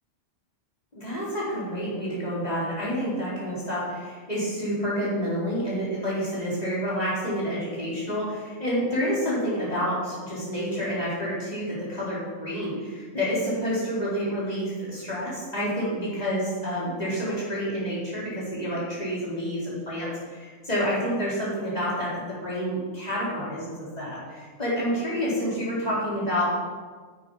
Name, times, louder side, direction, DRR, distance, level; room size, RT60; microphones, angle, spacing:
voice 1, 0.9-26.5, equal, 30° left, -8 dB, 4.2 m, -29 dB
10.0 x 8.3 x 5.5 m, 1.5 s
omnidirectional pair, 1.3 m